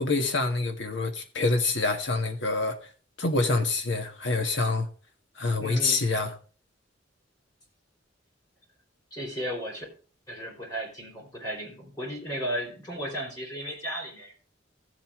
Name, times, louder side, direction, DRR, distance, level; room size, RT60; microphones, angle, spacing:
voice 1, 0.0-2.8 3.2-4.9 5.4-6.3, left 3 dB, 70° left, 1.7 m, -26 dB
voice 2, 5.6-6.0 9.1-9.9 10.3-14.3, equal, 20° left, 4.8 m, -35 dB
14.0 x 7.8 x 3.8 m
head